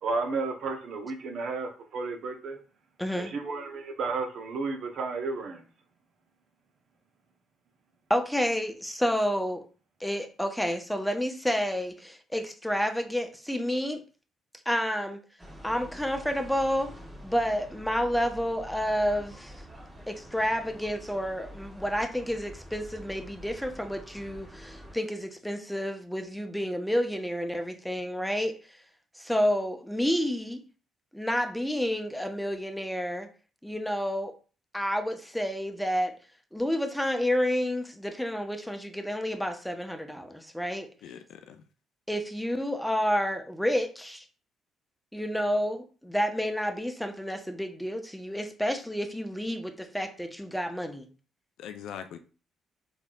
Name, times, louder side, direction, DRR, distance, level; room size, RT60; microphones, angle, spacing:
voice 1, 0.0-2.6 3.1-5.6, right 3 dB, 60° right, 6 dB, 0.8 m, -32 dB
voice 2, 3.0-3.3 8.1-9.6 10.0-14.0 14.7-15.2 15.6-16.9 17.2-19.6 20.1-28.8 29.1-30.6 31.1-33.3 33.6-34.3 34.7-36.1 36.5-40.9 42.1-44.2 45.1-51.1, equal, 5° left, 6 dB, 0.8 m, -30 dB
sound 1, 15.4-25.0, equal, 20° right, 1.6 m, -47 dB
voice 3, 41.0-41.6 51.6-52.2, left 8 dB, 65° left, 9 dB, 0.4 m, -42 dB
3.9 x 3.5 x 2.3 m, 0.37 s
hypercardioid pair, 45°, 0 cm